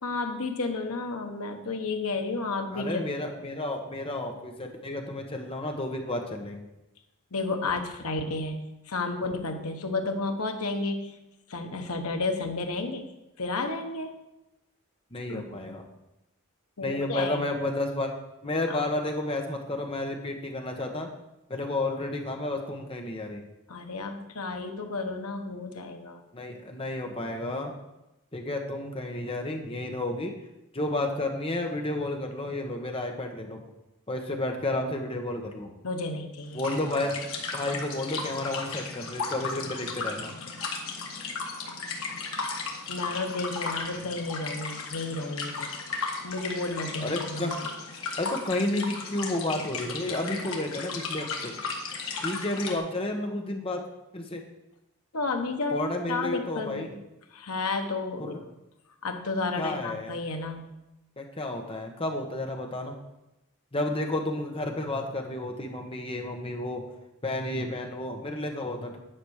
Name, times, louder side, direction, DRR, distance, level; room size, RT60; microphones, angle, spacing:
voice 1, 0.0-3.0 7.3-8.6 8.9-11.2 11.5-14.2 15.3-15.4 16.8-17.5 18.7-18.9 23.7-26.2 35.8-36.6 42.9-45.7 46.2-47.5 55.1-56.9 57.3-58.3 59.0-60.7, left 3 dB, 80° left, 5 dB, 1.1 m, -32 dB
voice 2, 2.7-6.6 15.1-15.8 16.8-18.1 18.4-21.1 21.5-23.4 26.3-27.7 28.3-30.4 30.7-33.6 34.1-35.7 36.5-37.2 37.5-40.4 47.0-47.6 48.2-51.5 52.2-53.8 54.1-54.4 55.7-56.9 58.2-58.4 59.6-60.2 61.2-62.9 63.7-66.8 67.2-69.0, left 2 dB, 25° left, 3 dB, 1.1 m, -31 dB
sound 1, 36.5-52.8, left 4 dB, 65° left, 1.6 m, -35 dB
10.5 x 5.2 x 6.4 m, 0.93 s
head